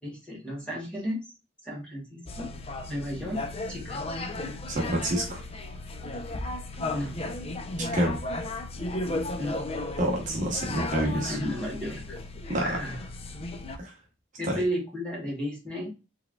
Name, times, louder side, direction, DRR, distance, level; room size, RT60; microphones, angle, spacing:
voice 1, 0.0-1.2 1.6-2.5 2.9-3.4 3.7-4.0 6.9-7.2 9.4-9.6 11.1-12.2 12.6-13.0 14.4-15.9, equal, 5° left, -4 dB, 1.8 m, -33 dB
sound 1, 2.3-13.8, left 2 dB, 30° left, 0.5 m, -35 dB
voice 2, 4.7-5.4 7.8-8.2 10.0-11.4 12.5-12.8 13.8-13.9 14.4-14.6, right 1 dB, 40° right, -1 dB, 0.9 m, -28 dB
4.5 x 3.4 x 2.2 m, 0.29 s
head